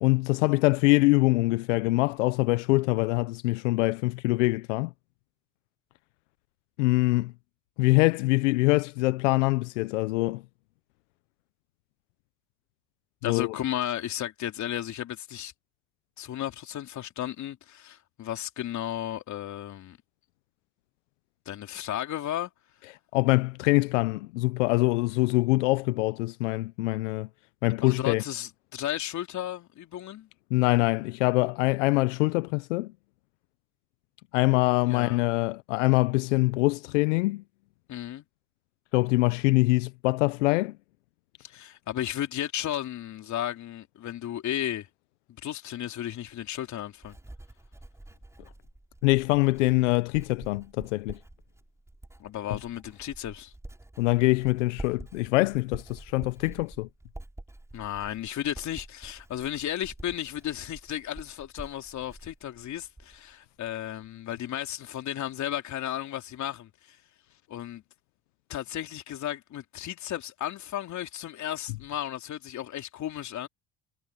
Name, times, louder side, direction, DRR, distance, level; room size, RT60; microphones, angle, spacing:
voice 1, 0.0-4.9 6.8-7.3 7.8-10.4 13.2-13.5 23.1-27.3 27.6-28.2 30.5-32.9 34.3-37.4 38.9-40.7 49.0-51.2 54.0-56.9, left 22 dB, 90° left, 0.7 m, -24 dB
voice 2, 13.2-15.5 16.2-20.0 21.4-22.5 27.8-30.3 34.9-35.2 37.9-38.2 41.4-44.9 45.4-47.2 52.2-53.5 57.7-67.0 67.5-67.8 68.5-73.5, left 11 dB, 50° left, 3.2 m, -34 dB
Writing, 46.3-63.3 63.6-64.1, right 1 dB, 10° right, 6.0 m, -47 dB
supercardioid pair, 85°, 36 cm